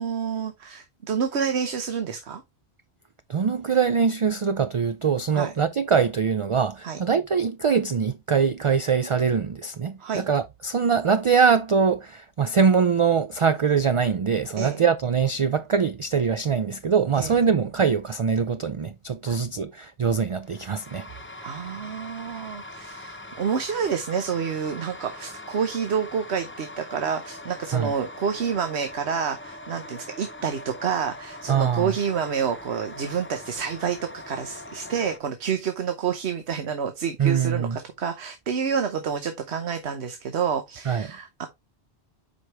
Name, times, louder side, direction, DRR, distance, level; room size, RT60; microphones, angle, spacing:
voice 1, 0.0-2.4 5.3-5.5 6.8-7.0 10.0-10.2 14.6-14.8 17.2-17.3 19.3-19.4 21.4-41.5, right 7 dB, 90° right, 1.2 m, -28 dB
voice 2, 3.3-21.1 27.7-27.9 31.5-31.9 37.2-37.8 40.9-41.1, right 6 dB, 55° right, 0.3 m, -23 dB
sound 1, 20.4-35.2, left 1 dB, 15° left, 0.6 m, -42 dB
8.0 x 5.1 x 3.1 m
omnidirectional pair, 1.1 m